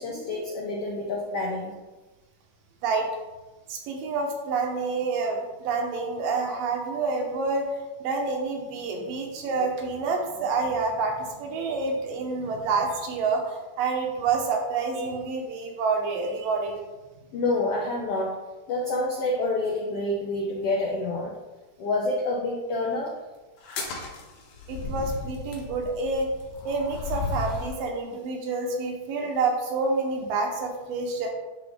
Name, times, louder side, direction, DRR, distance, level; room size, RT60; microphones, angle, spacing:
voice 1, 0.0-1.7 9.4-9.7 17.3-18.3 18.7-21.4 21.8-23.1, left 2 dB, 85° left, -1 dB, 1.3 m, -28 dB
voice 2, 3.7-7.6 8.0-16.8 24.7-26.3 26.6-31.3, right 4 dB, 80° right, 1 dB, 2.8 m, -28 dB
sound 1, 23.6-27.8, left 3 dB, 60° left, 2.3 m, -35 dB
11.0 x 3.9 x 3.6 m, 1.1 s
omnidirectional pair, 3.9 m